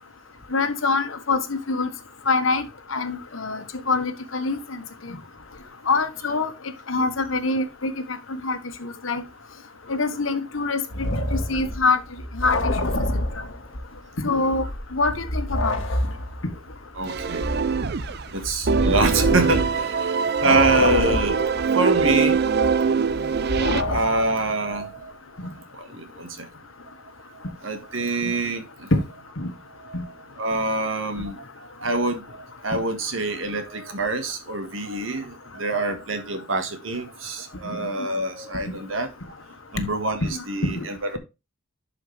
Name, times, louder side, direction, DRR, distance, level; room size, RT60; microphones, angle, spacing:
voice 1, 0.5-1.9 2.3-2.6 2.9-4.6 5.9-6.5 6.9-7.9 8.3-9.2 9.9-10.8 11.3-12.0 12.3-12.6 14.2-14.6 14.9-15.8 23.9-24.0 28.9-29.0 29.4-29.5 29.9-30.0 32.7-32.8 38.0-38.1 40.2-40.9, left 3 dB, 85° left, 1.4 m, -24 dB
sound 1, 10.9-14.0 14.3-20.1 20.4-24.4, left 1 dB, 70° left, 1.4 m, -28 dB
voice 2, 17.0-17.5 18.3-25.1 25.4-26.5 27.3-28.9 29.8-30.0 30.4-39.3 39.7-41.2, right 2 dB, 80° right, 1.7 m, -26 dB
sound 2, 17.1-18.3 18.7-23.8, right 5 dB, 55° right, 0.5 m, -23 dB
11.0 x 5.0 x 3.3 m
head